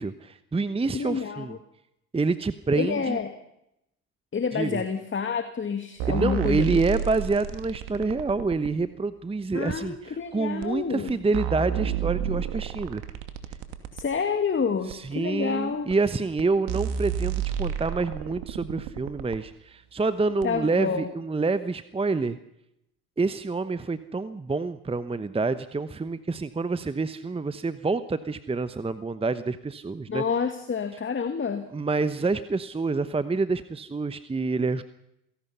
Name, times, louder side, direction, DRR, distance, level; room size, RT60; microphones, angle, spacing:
voice 1, 0.0-1.6 2.1-3.2 4.5-4.8 6.1-13.0 14.9-22.4 23.2-30.2 31.7-34.8, right 3 dB, 10° right, 13 dB, 1.0 m, -27 dB
voice 2, 0.9-1.6 2.7-3.3 4.3-6.8 9.5-11.1 13.9-15.9 20.4-21.1 30.1-31.7, left 6 dB, 25° left, 7 dB, 2.2 m, -28 dB
sound 1, 6.0-8.7 9.7-9.8 10.6-10.7 11.1-14.1 14.9-15.0 15.9-16.0 16.4-16.5 16.7-19.4 20.4-20.5, right 9 dB, 60° right, 2.7 m, -31 dB
28.0 x 17.5 x 5.7 m, 0.81 s
hypercardioid pair, 65°, 46 cm